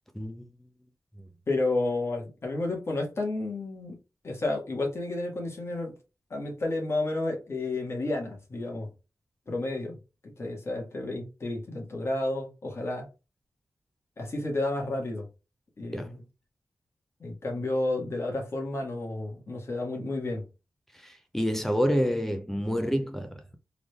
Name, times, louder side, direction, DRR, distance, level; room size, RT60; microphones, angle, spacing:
voice 1, 0.1-0.5 1.2-1.3 15.9-16.1 20.9-23.6, equal, 5° left, 0.5 m, -28 dB
voice 2, 1.5-4.0 4.2-5.9 6.3-8.9 9.5-10.0 10.4-13.1 14.2-15.3 15.8-16.2 17.2-20.5, left 2 dB, 50° left, 1.5 m, -31 dB
3.8 x 3.3 x 2.3 m
wide cardioid pair, 125°, 6 cm